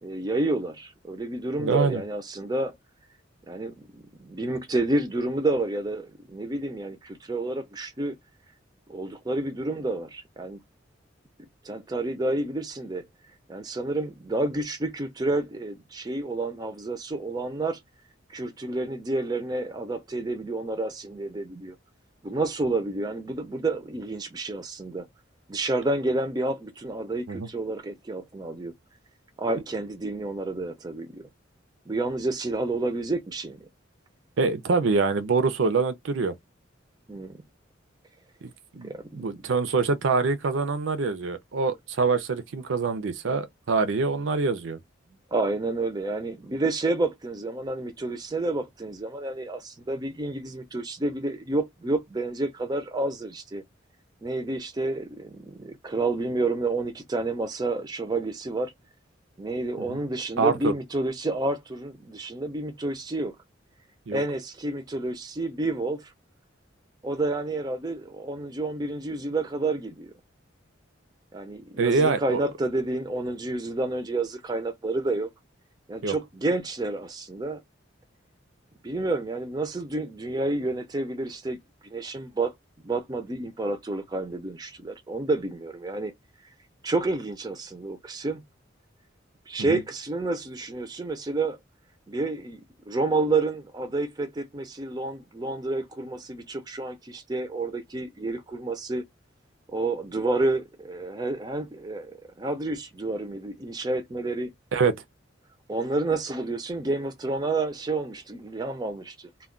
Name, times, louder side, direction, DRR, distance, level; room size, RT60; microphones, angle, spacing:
voice 1, 0.0-2.7 3.5-8.1 8.9-10.6 11.6-13.1 13.5-17.8 18.3-21.8 22.2-25.1 25.5-28.7 29.4-31.3 31.9-33.7 37.1-37.4 38.8-39.4 45.3-53.6 54.2-58.7 59.4-63.4 64.1-66.1 67.0-70.1 71.3-75.3 75.9-77.6 78.8-81.6 81.8-82.5 82.8-86.1 86.8-88.4 89.5-91.6 92.1-92.6 92.9-99.0 99.7-104.5 105.7-109.3, right 2 dB, 20° right, 0.4 m, -29 dB
voice 2, 1.6-2.0 27.3-27.5 34.4-36.3 38.4-44.8 59.8-60.0 60.4-60.7 64.1-64.2 71.8-72.4 76.0-76.1 89.6-89.8 104.7-104.9, right 4 dB, 80° right, 0.5 m, -25 dB
2.2 x 2.2 x 3.6 m
head